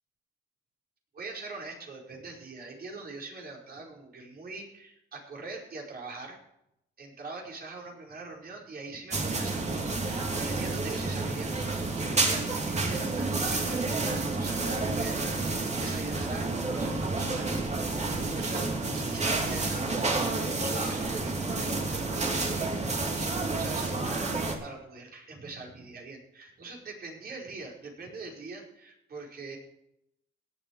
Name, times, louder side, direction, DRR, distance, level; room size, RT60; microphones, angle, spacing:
voice 1, 1.1-6.4 7.0-29.6, right 3 dB, 50° right, -1 dB, 5.0 m, -43 dB
sound 1, 9.1-24.5, right 3 dB, 35° right, 2.7 m, -30 dB
17.5 x 8.2 x 4.7 m, 0.82 s
cardioid pair, 90°, 20 cm